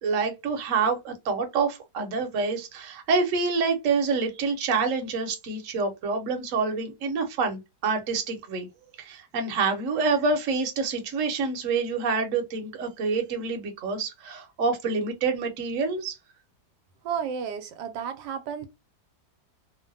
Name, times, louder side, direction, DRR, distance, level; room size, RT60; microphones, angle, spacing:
voice 1, 0.0-8.7 9.0-16.2, right 4 dB, 55° right, 1.0 m, -27 dB
voice 2, 17.0-18.7, right 7 dB, 80° right, 1.2 m, -32 dB
3.1 x 2.1 x 2.5 m
omnidirectional pair, 1.8 m